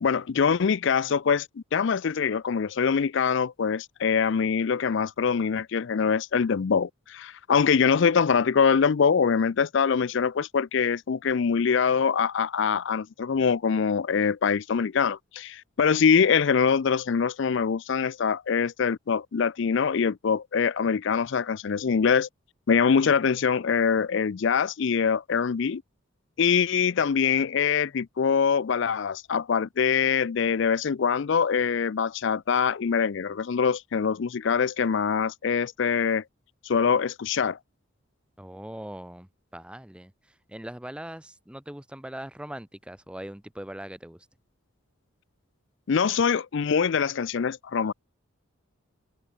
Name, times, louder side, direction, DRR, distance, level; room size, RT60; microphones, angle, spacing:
voice 1, 0.0-22.3 22.7-25.8 26.4-36.2 36.6-37.6 45.9-47.9, left 6 dB, 55° left, 0.4 m, -24 dB
voice 2, 38.4-44.3, right 1 dB, 5° right, 0.7 m, -41 dB
open air
head